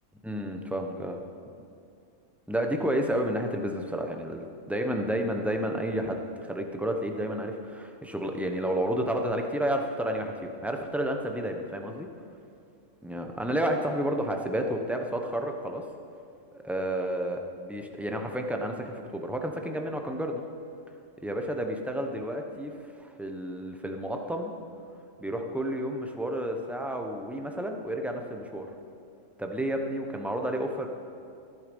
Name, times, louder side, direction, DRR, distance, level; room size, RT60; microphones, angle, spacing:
voice 1, 0.2-1.2 2.5-12.1 13.0-15.8 16.5-20.4 21.2-22.7 23.0-24.5 25.2-28.7 29.4-30.9, right 1 dB, ahead, 3 dB, 0.7 m, -31 dB
14.0 x 9.7 x 5.3 m, 2.5 s
omnidirectional pair, 1.3 m